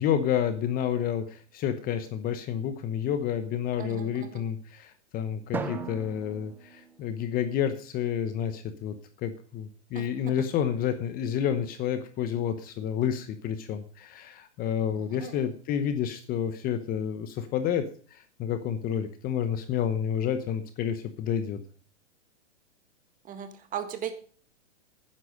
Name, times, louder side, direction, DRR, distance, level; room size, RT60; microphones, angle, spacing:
voice 1, 0.0-21.6, left 9 dB, 25° left, 10 dB, 1.0 m, -30 dB
voice 2, 3.8-4.4 9.9-10.1 15.2-15.3 23.3-24.1, right 9 dB, 20° right, 9 dB, 1.7 m, -37 dB
Drum, 5.5-7.8, right 4 dB, 5° right, 0.5 m, -38 dB
12.0 x 9.9 x 5.0 m, 0.43 s
hypercardioid pair, 140°, 36 cm